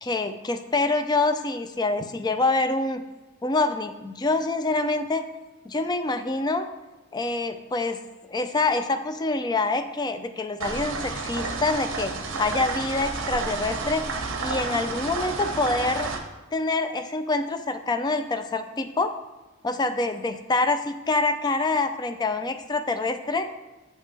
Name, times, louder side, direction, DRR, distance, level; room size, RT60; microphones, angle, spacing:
voice 1, 0.0-3.0 3.4-5.3 5.7-6.7 7.1-8.0 8.3-12.1 12.4-14.1 14.4-16.1 16.5-19.1 19.6-23.5, left 3 dB, 20° left, 8 dB, 0.4 m, -26 dB
sound 1, 10.6-16.2, right 3 dB, 60° right, 0.8 m, -31 dB
8.3 x 5.2 x 3.3 m, 1.1 s
head